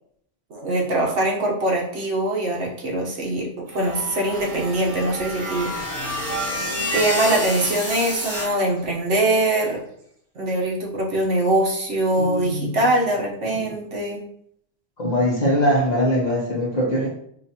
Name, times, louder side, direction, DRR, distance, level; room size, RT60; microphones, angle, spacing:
voice 1, 0.5-5.7 6.9-9.8 10.3-14.2, right 1 dB, 70° right, -2 dB, 1.3 m, -22 dB
sound 1, 3.7-8.5, equal, 35° right, 1.8 m, -29 dB
sound 2, 4.3-9.9, equal, 50° right, 0.8 m, -40 dB
voice 2, 12.2-12.9 13.6-13.7 15.0-17.1, equal, 40° left, -3 dB, 0.8 m, -22 dB
5.4 x 2.5 x 2.8 m, 0.68 s
omnidirectional pair, 1.3 m